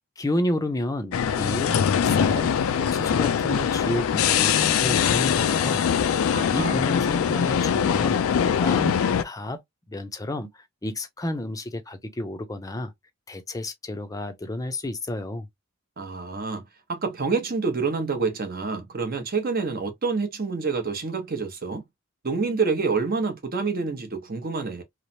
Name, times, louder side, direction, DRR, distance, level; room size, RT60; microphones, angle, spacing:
voice 1, 0.2-2.5 2.8-5.9 6.1-8.2 8.6-9.0 9.2-9.6 9.9-12.9 13.3-15.5, left 1 dB, 15° left, 0.5 m, -31 dB
sound 1, 1.1-9.2, left 8 dB, 75° left, 0.3 m, -22 dB
voice 2, 6.3-6.8 16.0-16.6 16.9-21.8 22.2-24.8, right 4 dB, 45° right, 0.7 m, -27 dB
3.1 x 2.0 x 2.6 m
head